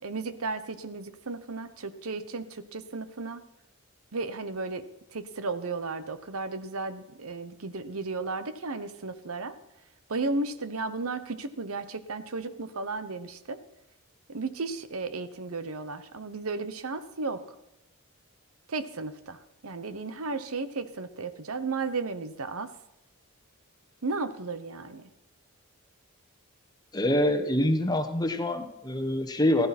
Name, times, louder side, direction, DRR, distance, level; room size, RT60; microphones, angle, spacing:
voice 1, 0.0-3.4 4.1-4.9 5.1-9.5 10.1-13.6 14.3-17.4 18.7-19.4 19.6-22.7 24.0-25.0, right 3 dB, 75° right, 11 dB, 1.0 m, -34 dB
voice 2, 26.9-29.7, left 1 dB, 20° left, 7 dB, 1.1 m, -25 dB
15.5 x 15.0 x 4.3 m, 0.82 s
head